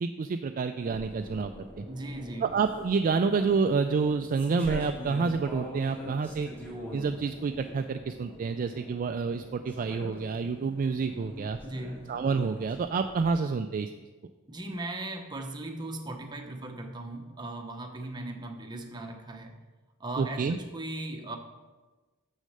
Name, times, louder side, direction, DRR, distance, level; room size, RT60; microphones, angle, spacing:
voice 1, 0.0-1.9 2.4-6.5 6.9-11.6 12.1-13.9 20.2-20.6, right 5 dB, 40° right, 7 dB, 0.3 m, -28 dB
sound 1, 0.8-13.3, left 1 dB, 10° left, 1.9 m, -44 dB
voice 2, 1.9-2.6 11.6-12.0 14.5-19.6 20.0-21.4, right 2 dB, 20° right, 3 dB, 0.9 m, -38 dB
6.5 x 6.4 x 6.5 m, 1.2 s
head